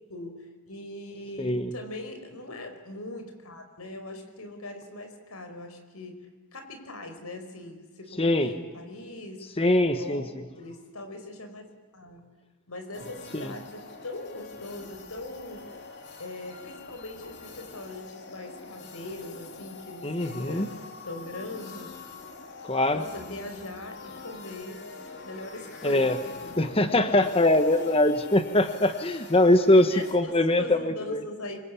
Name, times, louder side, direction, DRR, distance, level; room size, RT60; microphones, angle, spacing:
voice 1, 0.1-9.5 9.9-11.6 11.9-12.2 12.7-15.6 16.2-21.9 22.9-24.9 25.2-27.5 29.7-31.6, left 2 dB, 85° left, 7 dB, 5.2 m, -41 dB
voice 2, 1.4-1.7 8.2-8.5 9.6-10.2 13.3-13.5 20.0-20.7 22.6-23.0 25.8-26.2 26.6-31.2, left 1 dB, 25° left, 9 dB, 1.3 m, -22 dB
sound 1, 12.9-30.1, left 4 dB, 50° left, 3.8 m, -44 dB
27.0 x 25.5 x 8.5 m, 1.4 s
head